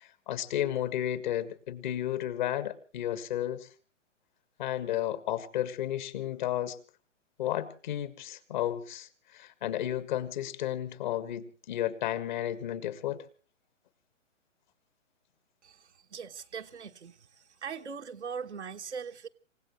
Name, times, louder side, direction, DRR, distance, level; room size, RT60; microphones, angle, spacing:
voice 1, 0.0-3.7 4.6-6.8 7.4-13.2, left 12 dB, 40° left, 1.7 m, -33 dB
voice 2, 15.6-17.3 17.6-19.3, right 6 dB, 65° right, 1.3 m, -40 dB
28.0 x 16.5 x 3.1 m
figure-of-eight pair, 125°, 38 cm